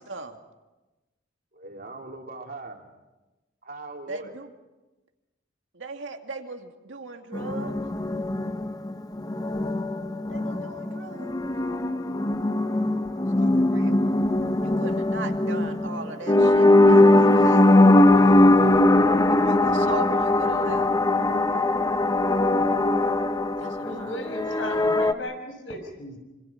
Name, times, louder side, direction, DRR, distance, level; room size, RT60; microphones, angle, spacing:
voice 1, 1.5-2.9 3.6-4.4, right 2 dB, 50° right, 1 dB, 3.6 m, -40 dB
voice 2, 4.1-4.5 5.7-7.8 10.3-11.4 13.4-14.0 14.6-17.7 19.3-20.9 23.6-24.1, right 3 dB, 75° right, 4 dB, 2.3 m, -38 dB
sound 1, 7.3-25.1, left 2 dB, 20° left, 0.8 m, -20 dB
voice 3, 23.7-26.2, left 1 dB, 90° left, 5 dB, 6.1 m, -36 dB
26.0 x 26.0 x 5.9 m, 1.1 s
head